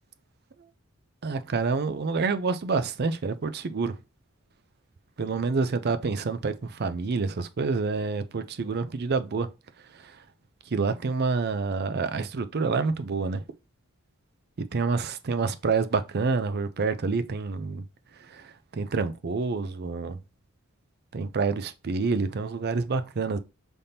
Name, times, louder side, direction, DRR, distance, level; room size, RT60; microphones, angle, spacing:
voice 1, 1.2-4.0 5.2-9.5 9.9-10.2 10.7-13.4 14.7-17.8 18.3-20.2 21.1-23.4, right 4 dB, 50° right, 0.5 m, -28 dB
5.5 x 3.5 x 2.7 m
head